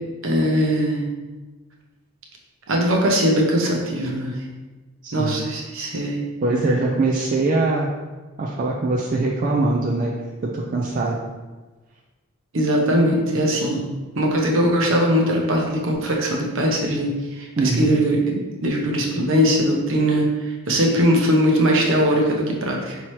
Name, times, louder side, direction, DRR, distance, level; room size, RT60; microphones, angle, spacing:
voice 1, 0.2-1.1 2.7-4.4 5.1-6.2 12.5-13.9 14.2-17.1 17.4-23.0, equal, 60° right, 0 dB, 0.8 m, -20 dB
voice 2, 5.0-5.4 6.4-7.9 8.4-10.1 10.4-11.2 17.6-17.9, right 2 dB, 35° right, -3 dB, 0.4 m, -22 dB
5.5 x 2.9 x 3.1 m, 1.2 s
head